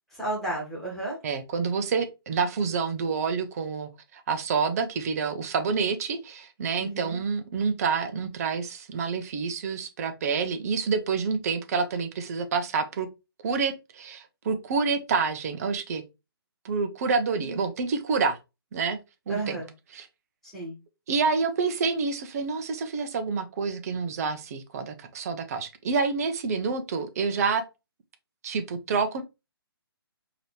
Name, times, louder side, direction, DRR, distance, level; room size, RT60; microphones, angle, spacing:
voice 1, 0.1-1.2 6.8-7.2 17.3-17.6 19.3-19.7 20.5-20.7, right 2 dB, ahead, 1.8 m, -33 dB
voice 2, 1.2-13.1 13.4-16.0 16.6-18.4 18.7-19.0 19.3-19.6 19.9-20.1 21.1-27.6 28.4-29.2, right 5 dB, 40° right, 0.7 m, -28 dB
4.9 x 2.9 x 3.1 m
figure-of-eight pair, 140°, 13 cm